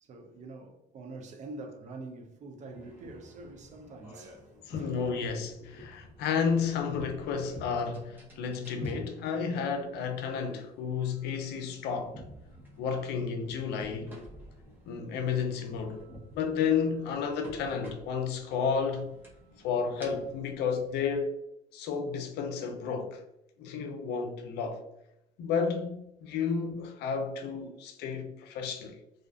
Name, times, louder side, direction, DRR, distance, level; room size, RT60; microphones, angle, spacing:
voice 1, 0.0-4.4 4.8-5.3 5.7-5.9, right 2 dB, 45° right, 0.5 m, -45 dB
sound 1, 2.7-21.1, equal, 10° right, 0.8 m, -50 dB
voice 2, 4.7-12.2 12.8-14.1 14.9-16.0 16.3-19.1 19.6-21.4 21.7-23.2 23.6-24.8 25.4-29.0, left 6 dB, 80° left, 0.5 m, -32 dB
2.5 x 2.4 x 2.3 m
cardioid pair, 110°, 17 cm